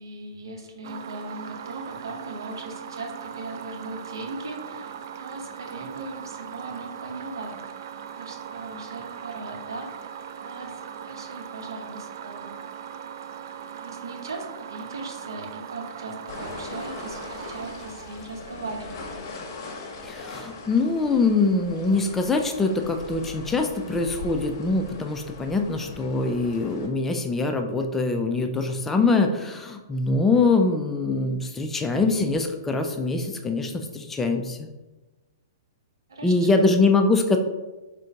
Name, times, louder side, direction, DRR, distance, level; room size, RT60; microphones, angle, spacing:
voice 1, 0.0-7.6 8.1-9.9 10.4-12.5 13.8-19.3 36.1-36.7, right 2 dB, 85° right, 2 dB, 0.8 m, -38 dB
sound 1, 0.8-18.8, right 8 dB, 60° right, 0.3 m, -39 dB
sound 2, 16.3-26.9, left 3 dB, 55° left, 0.9 m, -40 dB
voice 2, 20.0-34.7 36.2-37.4, left 3 dB, 10° left, 4 dB, 0.4 m, -23 dB
3.7 x 2.5 x 4.4 m, 1.1 s
hypercardioid pair, 130°, 2 cm